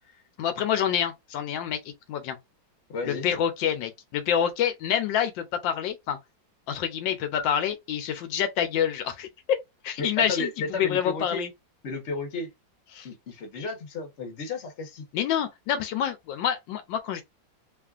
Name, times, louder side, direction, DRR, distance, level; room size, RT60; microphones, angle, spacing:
voice 1, 0.4-1.8 2.1-2.4 3.0-6.2 6.7-9.6 9.8-11.5 12.9-13.1 15.1-17.2, left 9 dB, 85° left, 1.3 m, -27 dB
voice 2, 2.9-3.3 10.0-11.4 11.8-12.5 13.0-15.0, left 3 dB, 45° left, 1.0 m, -33 dB
3.1 x 2.4 x 2.4 m
omnidirectional pair, 2.0 m